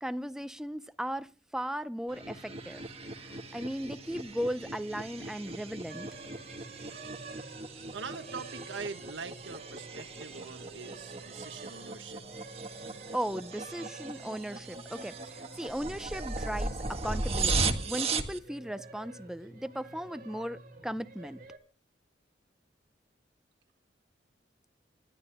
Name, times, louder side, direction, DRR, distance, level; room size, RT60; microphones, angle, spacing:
voice 1, 0.0-2.8 3.2-6.1 13.1-21.4, equal, 5° right, 0.6 m, -37 dB
sound 1, 2.1-18.4, right 3 dB, 35° right, 1.6 m, -37 dB
sound 2, 5.5-21.5, right 1 dB, 25° left, 4.3 m, -56 dB
sound 3, 5.9-21.6, right 4 dB, 50° right, 3.0 m, -51 dB
voice 2, 7.9-12.2, right 5 dB, 80° right, 1.4 m, -43 dB
27.0 x 12.0 x 2.2 m
head